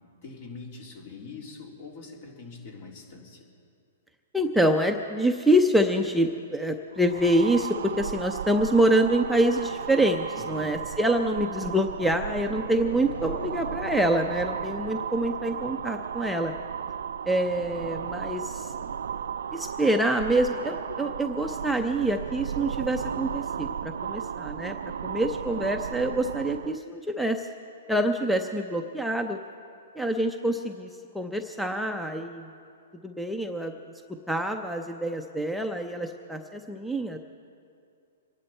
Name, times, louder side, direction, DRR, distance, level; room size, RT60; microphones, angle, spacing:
voice 1, 0.2-3.5 10.4-10.9, left 4 dB, 55° left, 0 dB, 3.6 m, -43 dB
voice 2, 4.3-16.5 17.3-18.7 19.5-24.7 25.0-27.5 27.9-29.4 30.0-30.9 31.1-32.5 33.0-33.8 34.3-37.2, right 1 dB, ahead, 2 dB, 0.6 m, -26 dB
sound 1, 6.9-26.8, right 7 dB, 80° right, 0.4 m, -35 dB
26.0 x 11.0 x 4.4 m, 2.4 s
hypercardioid pair, 145°, 0 cm